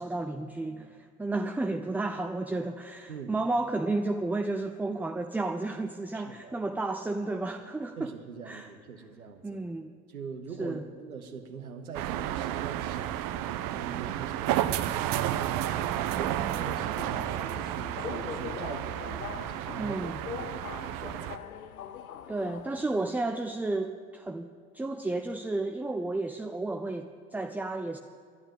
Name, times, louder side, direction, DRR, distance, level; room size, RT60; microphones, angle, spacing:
voice 1, 0.0-8.1 8.5-8.7 9.4-9.9 10.6-10.8 19.8-20.2 22.3-28.0, right 2 dB, 5° right, 6 dB, 0.3 m, -32 dB
voice 2, 6.1-6.6 8.0-9.6 10.1-20.0 20.4-21.4, right 6 dB, 85° right, 6 dB, 1.0 m, -43 dB
sound 1, 11.9-21.4, right 12 dB, 50° right, 0.7 m, -32 dB
Subway metro underground, 16.3-23.1, left 8 dB, 85° left, 0.6 m, -42 dB
11.0 x 11.0 x 8.9 m, 2.1 s
figure-of-eight pair, 55°, 42 cm